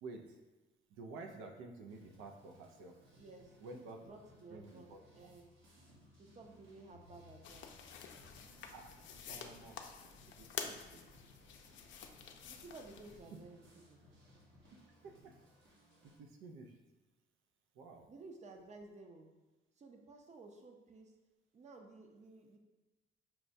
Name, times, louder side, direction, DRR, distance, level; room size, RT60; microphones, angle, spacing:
voice 1, 0.0-0.4 0.9-3.0 3.6-4.1 4.5-5.0 8.7-9.0 9.3-9.8 10.4-11.0 15.0-15.3 16.0-16.8 17.8-18.1, right 3 dB, 90° right, 3 dB, 0.4 m, -51 dB
sound 1, 1.9-16.2, left 1 dB, 70° right, 1.0 m, -65 dB
voice 2, 3.2-3.6 4.0-5.5 6.2-7.9 12.4-14.0 18.1-19.3 19.8-21.1 21.5-22.6, right 3 dB, 35° right, 3 dB, 0.6 m, -55 dB
sound 2, 7.4-13.2, left 7 dB, 70° left, 0.4 m, -49 dB
5.6 x 2.1 x 2.6 m, 1.1 s
cardioid pair, 90°, 20 cm